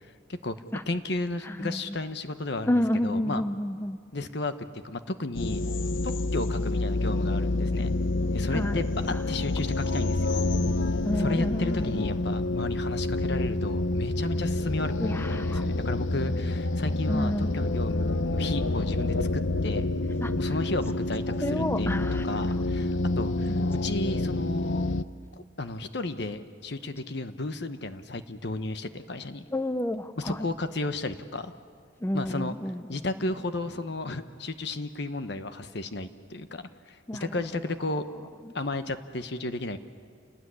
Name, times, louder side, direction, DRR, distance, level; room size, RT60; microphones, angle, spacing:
voice 1, 0.9-3.4 4.1-4.5 4.8-5.6 6.0-7.9 8.3-10.4 11.1-19.9 20.4-21.9 22.2-24.8 25.6-29.4 30.2-31.5 32.1-32.5 32.9-38.0 38.5-39.8, left 2 dB, 60° left, 10 dB, 1.2 m, -33 dB
voice 2, 1.4-1.8 2.7-4.0 8.5-8.8 11.1-12.1 15.0-15.6 17.1-17.5 20.2-20.3 21.4-22.3 23.5-23.7 29.5-30.5 32.0-33.0 37.1-37.4, left 1 dB, 10° left, 10 dB, 0.6 m, -30 dB
sound 1, 5.3-25.0, left 2 dB, 80° left, 0.7 m, -28 dB
29.0 x 19.0 x 9.8 m, 2.1 s
head